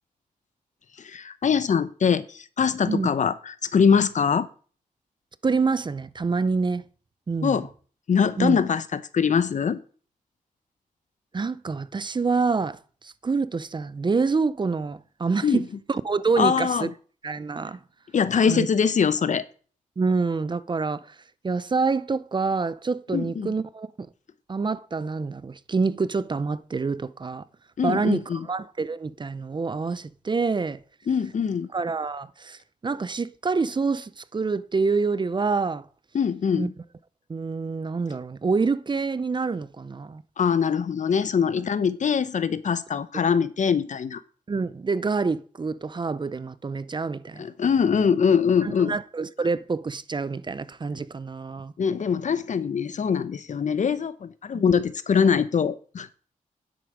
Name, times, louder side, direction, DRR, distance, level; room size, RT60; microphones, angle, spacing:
voice 1, 1.0-4.5 7.4-7.7 8.1-9.8 15.4-15.6 16.4-16.9 18.1-19.4 23.1-23.5 27.8-28.4 31.1-31.7 36.1-36.7 40.4-44.2 47.4-48.9 51.8-56.1, left 6 dB, 60° left, 0.8 m, -23 dB
voice 2, 5.4-6.8 7.3-7.6 8.4-8.6 11.3-16.9 17.2-17.8 18.5-18.7 20.0-21.2 21.4-24.1 24.5-27.4 27.8-30.8 31.7-35.9 36.6-36.7 37.3-40.2 44.5-47.5 48.6-51.7 54.5-54.6, right 4 dB, 35° right, 0.6 m, -27 dB
9.9 x 7.9 x 5.1 m
cardioid pair, 80°, 14 cm